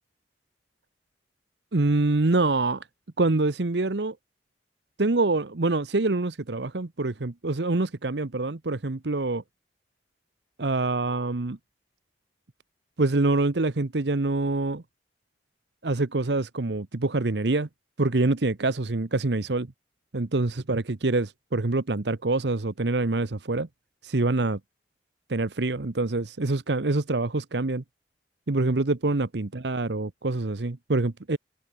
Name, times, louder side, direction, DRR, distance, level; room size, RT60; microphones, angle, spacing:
voice 1, 1.7-2.9 3.2-4.2 5.0-9.4 10.6-11.6 13.0-14.8 15.8-17.7 18.0-19.7 20.1-23.7 24.0-24.6 25.3-27.8 28.5-31.4, right 2 dB, 75° right, 1.0 m, -25 dB
head